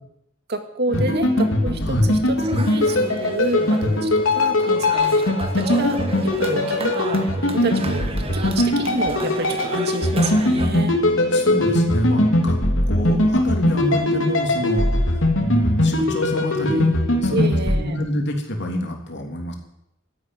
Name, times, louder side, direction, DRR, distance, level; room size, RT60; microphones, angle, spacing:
voice 1, 0.5-11.0 12.9-13.0 17.3-18.0, right 2 dB, 55° right, 6 dB, 2.1 m, -29 dB
sound 1, 0.9-17.8, left 1 dB, 90° left, 2.9 m, -20 dB
sound 2, 2.4-10.7, right 2 dB, 30° right, 1.8 m, -34 dB
voice 2, 11.3-12.6 12.9-17.5 17.8-19.5, equal, 60° left, 2 dB, 3.3 m, -26 dB
13.0 x 11.0 x 9.5 m, 0.81 s
head